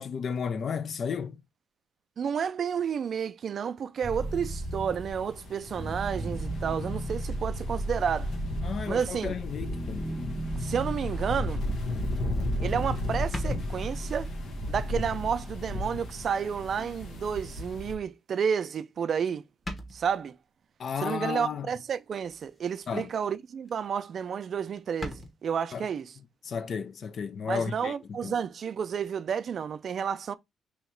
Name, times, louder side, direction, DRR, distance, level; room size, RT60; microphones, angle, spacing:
voice 1, 0.0-1.4 8.6-10.0 20.8-21.7 22.9-23.1 25.7-25.9 26.4-27.9 28.2-28.3, left 6 dB, 55° left, 0.4 m, -33 dB
voice 2, 2.2-8.3 8.9-9.4 10.6-11.6 12.6-14.3 14.7-19.4 19.9-20.4 21.0-26.1 27.5-30.3, right 7 dB, 55° right, 0.4 m, -31 dB
sound 1, 4.0-18.1, right 1 dB, 5° right, 0.8 m, -36 dB
sound 2, 4.2-17.9, left 2 dB, 80° left, 1.0 m, -36 dB
sound 3, 13.3-14.2 14.9-15.1 15.6-15.7 17.0-17.1 18.7-19.1 19.4-19.5 19.6-20.3 22.2-22.7 23.1-23.3 23.7-23.8 24.0-24.1 24.3-24.4 24.8-25.3, left 1 dB, 20° left, 1.1 m, -41 dB
3.1 x 2.8 x 4.4 m
cardioid pair, 90°, 0 cm